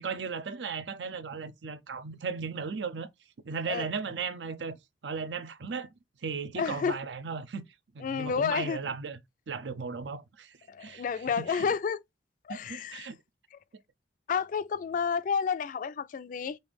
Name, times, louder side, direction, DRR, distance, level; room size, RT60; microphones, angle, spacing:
voice 1, 0.0-3.1 3.4-4.8 5.0-5.9 6.2-7.7 7.9-9.2 9.5-11.7 12.5-13.2, right 5 dB, 90° right, 0.6 m, -36 dB
voice 2, 6.6-7.0 8.0-8.8 10.7-12.0 12.4-13.1 14.3-16.6, left 6 dB, 50° left, 0.3 m, -30 dB
5.4 x 2.6 x 3.4 m
head